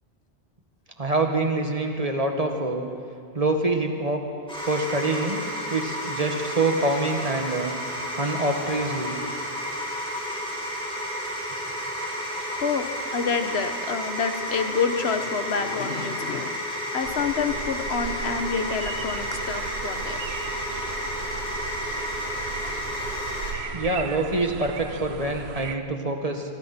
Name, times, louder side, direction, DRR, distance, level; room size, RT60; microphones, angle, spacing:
voice 1, 1.0-2.9 3.3-4.2 4.7-7.8 8.2-9.1 23.7-26.4, right 2 dB, 35° right, 3 dB, 1.8 m, -25 dB
sound 1, 4.5-23.5, equal, 5° left, 5.4 m, -31 dB
voice 2, 9.3-9.8 12.5-16.6 16.9-20.2 21.9-22.0 22.6-22.8, left 5 dB, 85° left, 8 dB, 1.4 m, -28 dB
sound 2, 17.0-25.8, right 8 dB, 85° right, 1.0 m, -37 dB
25.5 x 23.5 x 4.4 m, 2.4 s
omnidirectional pair, 1.0 m